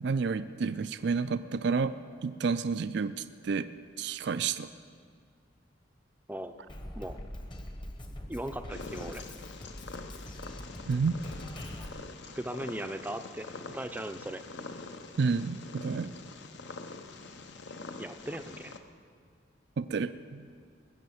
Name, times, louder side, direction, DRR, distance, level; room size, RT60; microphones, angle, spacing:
voice 1, 0.0-1.9 2.2-3.7 4.0-4.7 10.9-11.2 15.2-16.1 19.8-20.6, right 5 dB, 60° right, 13 dB, 0.4 m, -30 dB
Drum kit, 6.7-11.9, left 1 dB, 25° left, 1.0 m, -43 dB
voice 2, 8.3-9.3 12.2-14.4 18.0-18.7, right 1 dB, 10° right, 8 dB, 0.5 m, -38 dB
Purr, 8.7-18.8, left 3 dB, 60° left, 0.8 m, -45 dB
20.0 x 7.3 x 7.8 m, 2.1 s
head